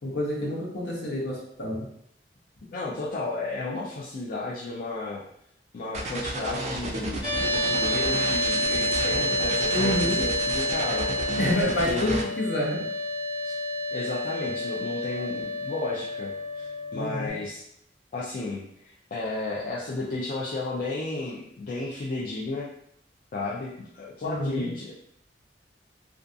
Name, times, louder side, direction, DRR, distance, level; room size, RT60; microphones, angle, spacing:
voice 1, 0.0-1.9 9.7-10.2 11.4-12.9 16.9-17.4 24.2-24.7, left 1 dB, 65° left, -3 dB, 0.8 m, -28 dB
voice 2, 2.7-5.2 5.7-11.1 11.6-12.2 13.4-13.5 13.9-17.6 18.1-22.7 23.3-24.9, left 2 dB, 50° left, -5 dB, 0.4 m, -33 dB
sound 1, 5.9-12.2, right 2 dB, 40° right, 0.3 m, -32 dB
sound 2, 7.2-17.3, left 1 dB, 30° left, 0.9 m, -29 dB
2.4 x 2.3 x 2.5 m, 0.72 s
head